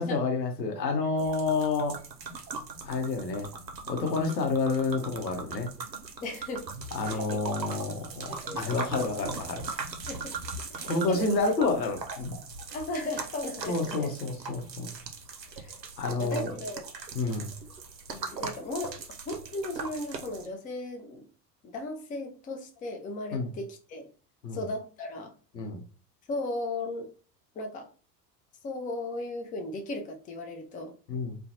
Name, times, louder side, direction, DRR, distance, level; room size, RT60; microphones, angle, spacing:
voice 1, 0.0-2.0 2.8-3.5 3.9-5.7 6.9-8.3 8.6-9.7 10.8-12.4 13.7-14.9 16.0-16.5 17.1-17.5 23.3-23.5 24.4-24.6 25.5-25.8 31.1-31.4, left 3 dB, 85° left, 3 dB, 0.7 m, -29 dB
sound 1, 1.2-20.5, right 4 dB, 90° right, 0.6 m, -40 dB
voice 2, 6.2-6.7 7.0-7.8 8.3-8.7 10.1-10.4 10.7-11.4 12.7-14.1 15.6-15.7 16.2-16.9 18.1-19.0 19.3-21.3 21.6-24.1 24.5-25.3 26.3-27.1 27.6-27.9 28.6-30.9, left 2 dB, 15° left, 4 dB, 0.5 m, -36 dB
2.4 x 2.2 x 2.7 m, 0.37 s
figure-of-eight pair, 70°, 49 cm